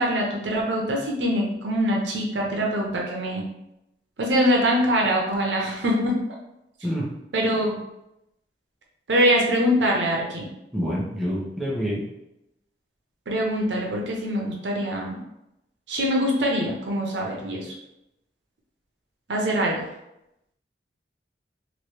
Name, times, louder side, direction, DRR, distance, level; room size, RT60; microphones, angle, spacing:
voice 1, 0.0-3.4 4.2-6.2 7.3-7.8 9.1-10.5 13.3-15.2 15.9-17.7 19.3-19.9, equal, 90° right, -1 dB, 0.8 m, -23 dB
voice 2, 10.7-12.1, equal, ahead, -6 dB, 0.7 m, -27 dB
3.1 x 2.6 x 3.1 m, 0.87 s
head